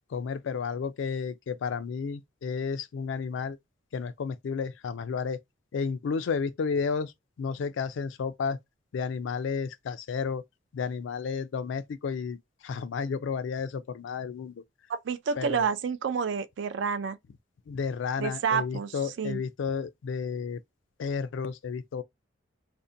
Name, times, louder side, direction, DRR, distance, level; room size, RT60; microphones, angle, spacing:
voice 1, 0.1-3.6 3.9-5.4 5.7-8.6 8.9-10.4 10.7-14.6 15.4-15.7 17.7-20.6 21.0-22.0, left 5 dB, 70° left, 0.3 m, -32 dB
voice 2, 14.9-17.2 18.2-19.4, right 6 dB, 65° right, 0.3 m, -29 dB
2.5 x 2.1 x 2.5 m
head